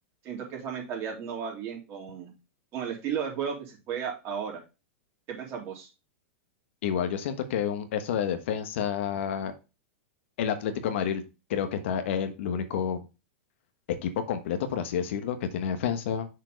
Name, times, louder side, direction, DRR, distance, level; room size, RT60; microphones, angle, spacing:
voice 1, 0.2-2.3 2.7-4.6 5.3-5.9, right 7 dB, 40° right, 0 dB, 3.2 m, -34 dB
voice 2, 6.8-9.5 10.4-11.2 11.5-13.0 13.9-16.3, left 8 dB, 65° left, 8 dB, 1.3 m, -29 dB
6.7 x 4.5 x 5.2 m, 0.28 s
hypercardioid pair, 110°, 7 cm